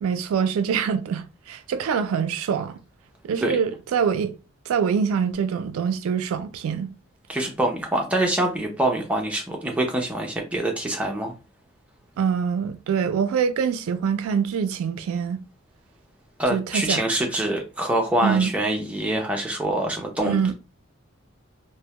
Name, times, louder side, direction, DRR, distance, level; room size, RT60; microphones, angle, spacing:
voice 1, 0.0-2.8 3.2-4.3 4.7-6.9 12.2-15.4 16.5-17.0 18.2-18.5 20.2-20.5, right 7 dB, 85° right, 0.3 m, -24 dB
voice 2, 7.3-11.3 16.4-20.4, right 1 dB, 5° right, 0.4 m, -25 dB
2.1 x 2.0 x 2.8 m
head